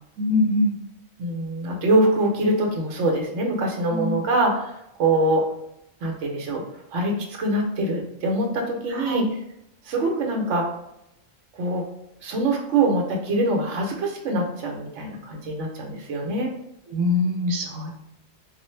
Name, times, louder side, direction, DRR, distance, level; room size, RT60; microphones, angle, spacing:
voice 1, 0.2-0.8 3.9-4.2 8.9-9.3 16.9-17.9, left 2 dB, 90° right, 2 dB, 1.1 m, -23 dB
voice 2, 1.2-5.4 6.0-6.6 6.9-9.2 9.8-10.7 11.5-11.8 12.2-16.5, right 2 dB, 65° right, 1 dB, 1.0 m, -24 dB
3.2 x 2.5 x 3.1 m, 0.82 s
omnidirectional pair, 1.4 m